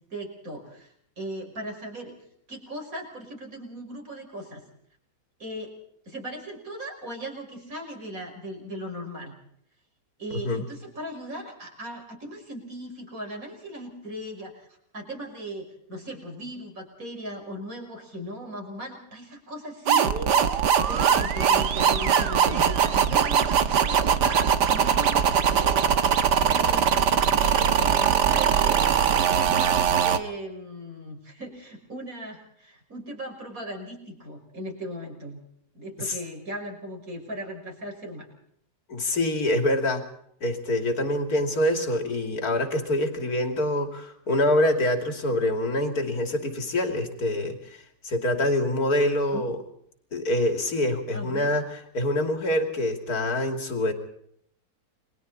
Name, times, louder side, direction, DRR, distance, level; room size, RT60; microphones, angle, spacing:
voice 1, 0.0-2.1 2.5-4.6 5.4-5.7 6.1-9.3 10.2-14.7 14.9-25.9 26.5-35.4 35.7-38.3 49.3-49.5 51.1-51.5, right 1 dB, 50° right, 2 dB, 6.1 m, -38 dB
voice 2, 10.3-10.6 36.0-36.1 38.9-40.1 40.4-49.6 50.1-53.9, left 1 dB, 60° left, 5 dB, 3.3 m, -25 dB
sound 1, 19.9-30.2, right 8 dB, 75° right, 1.8 m, -21 dB
29.5 x 23.0 x 4.2 m, 0.69 s
omnidirectional pair, 1.8 m